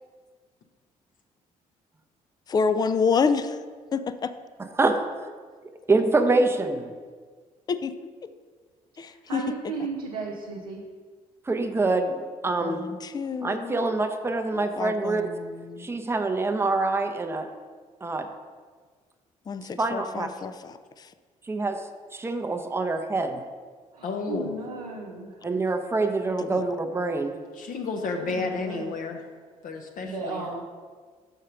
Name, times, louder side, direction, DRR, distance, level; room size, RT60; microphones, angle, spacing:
voice 1, 2.5-3.6 3.9-4.3 7.7-7.9 9.0-9.4 12.6-13.9 14.8-15.9 19.5-21.1 26.4-26.7, left 5 dB, 20° left, 12 dB, 0.4 m, -28 dB
voice 2, 5.9-6.9 11.5-12.8 13.4-15.2 15.8-17.5 18.0-18.3 19.8-20.3 21.5-21.8 22.1-23.4 25.4-27.4, right 3 dB, 15° right, 6 dB, 0.7 m, -25 dB
voice 3, 9.0-10.9 23.9-25.5 28.2-28.9 30.0-30.7, right 4 dB, 80° right, -2 dB, 0.6 m, -35 dB
voice 4, 24.0-24.6 27.5-29.2 29.6-30.5, left 4 dB, 45° left, 3 dB, 0.8 m, -31 dB
6.5 x 4.5 x 5.1 m, 1.5 s
figure-of-eight pair, 45°, 19 cm